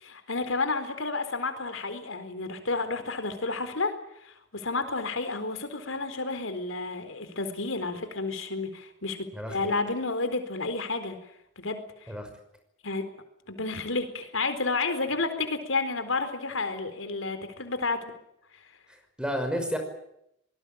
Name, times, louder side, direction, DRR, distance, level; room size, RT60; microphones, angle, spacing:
voice 1, 0.0-3.9 4.2-11.2 11.6-12.1 12.8-13.1 13.5-18.0, left 3 dB, 85° left, 9 dB, 4.2 m, -31 dB
voice 2, 18.9-19.8, equal, 5° right, 6 dB, 5.8 m, -31 dB
25.0 x 20.0 x 8.8 m, 0.78 s
head